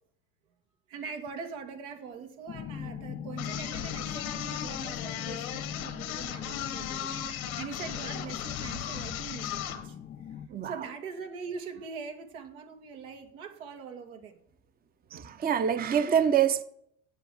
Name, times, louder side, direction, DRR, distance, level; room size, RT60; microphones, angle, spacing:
voice 1, 0.9-7.1 7.5-10.0 10.6-14.4, right 5 dB, 85° right, 1.9 m, -42 dB
sound 1, 2.5-10.5, left 8 dB, 25° left, 0.5 m, -41 dB
sound 2, 3.4-9.9, left 10 dB, 90° left, 1.6 m, -37 dB
voice 2, 15.1-16.6, right 8 dB, 20° right, 0.7 m, -25 dB
8.3 x 7.1 x 8.1 m
supercardioid pair, 90°, 41 cm